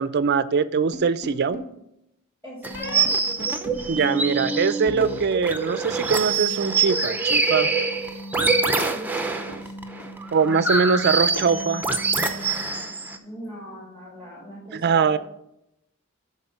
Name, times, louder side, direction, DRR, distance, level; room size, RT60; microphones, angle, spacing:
voice 1, 0.0-1.6 3.9-7.7 10.3-11.8 14.7-15.2, right 5 dB, 50° right, 15 dB, 0.5 m, -22 dB
sound 1, 0.9-1.7 2.7-3.1 3.7-5.2 5.5-6.1, right 1 dB, 55° left, 1.1 m, -32 dB
voice 2, 2.4-3.1 13.2-15.2, left 1 dB, 10° left, -5 dB, 2.5 m, -39 dB
sound 2, 2.6-13.2, right 4 dB, 10° right, 0.7 m, -25 dB
sound 3, 3.3-4.6 5.0-6.8 7.4-7.7 7.9-9.1 9.4-10.3 10.7-12.5, equal, 90° left, 2.8 m, -43 dB
12.0 x 4.2 x 5.5 m, 0.83 s
head